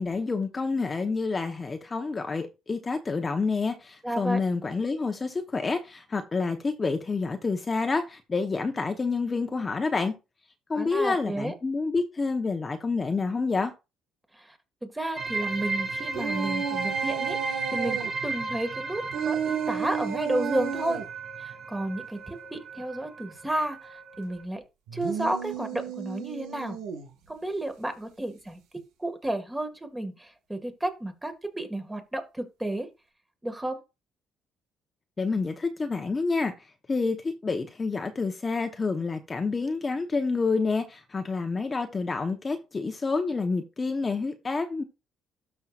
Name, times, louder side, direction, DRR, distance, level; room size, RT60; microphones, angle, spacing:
voice 1, 0.0-10.1 10.7-13.7 35.2-36.5 36.9-44.8, left 4 dB, 25° left, 1.0 m, -28 dB
voice 2, 4.0-4.4 10.8-11.5 14.3-21.0 21.4-24.6 24.9-26.8 27.3-28.6 29.0-32.9 33.4-33.8, right 1 dB, 10° right, 1.9 m, -32 dB
sound 1, 15.1-24.4, right 3 dB, 35° right, 3.8 m, -35 dB
sound 2, 16.1-18.1 19.1-21.1 24.9-27.1, right 7 dB, 90° right, 1.7 m, -32 dB
12.5 x 5.7 x 2.5 m
cardioid pair, 100°, 0 cm